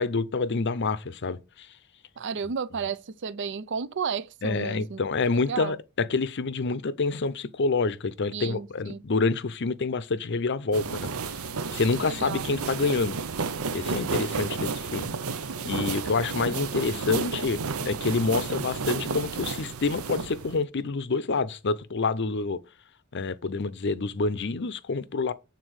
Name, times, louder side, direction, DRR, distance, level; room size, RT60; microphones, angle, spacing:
voice 1, 0.0-1.7 4.4-11.1 11.7-13.2 13.7-15.1 15.6-17.6 17.9-22.6 23.1-25.3, left 4 dB, 55° left, 0.6 m, -27 dB
voice 2, 2.2-5.0 5.5-5.8 8.3-9.0 12.0-12.5 16.1-16.5, right 6 dB, 55° right, 0.5 m, -33 dB
sound 1, 10.7-20.6, right 4 dB, 80° right, 0.8 m, -32 dB
8.2 x 4.0 x 6.4 m
head